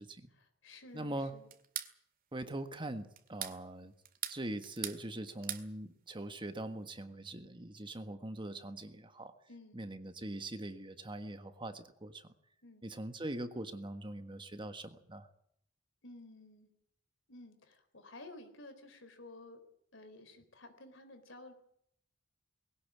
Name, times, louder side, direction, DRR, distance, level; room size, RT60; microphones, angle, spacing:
voice 1, 0.3-1.5 9.5-9.8 12.6-12.8 16.0-16.7 17.3-19.6 19.9-21.5, left 2 dB, 75° left, 8 dB, 4.1 m, -53 dB
voice 2, 0.9-1.3 2.3-3.9 4.3-9.3 9.7-12.3 12.8-15.3, right 1 dB, 25° right, 9 dB, 1.5 m, -42 dB
sound 1, 1.5-1.9 3.2-3.6 4.0-5.0 5.3-5.7, right 10 dB, 50° right, 2.0 m, -40 dB
20.5 x 17.5 x 8.6 m, 0.72 s
head